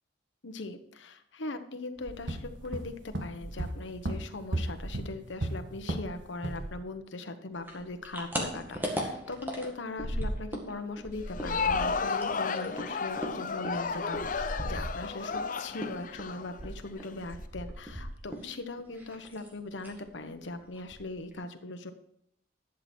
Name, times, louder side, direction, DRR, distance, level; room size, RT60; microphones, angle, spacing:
voice 1, 0.4-21.9, left 2 dB, 80° left, 7 dB, 1.1 m, -40 dB
sound 1, 2.0-6.2 6.4-6.7, right 1 dB, 75° right, 1.5 m, -35 dB
sound 2, 7.6-10.7 11.0-15.4 15.8-18.5 18.8-19.5 19.8-20.0 20.4-20.5 20.8-21.3, equal, 10° right, 1.8 m, -37 dB
Crowd, 11.2-17.1, left 5 dB, 45° left, 0.6 m, -33 dB
11.5 x 7.8 x 4.4 m, 0.73 s
head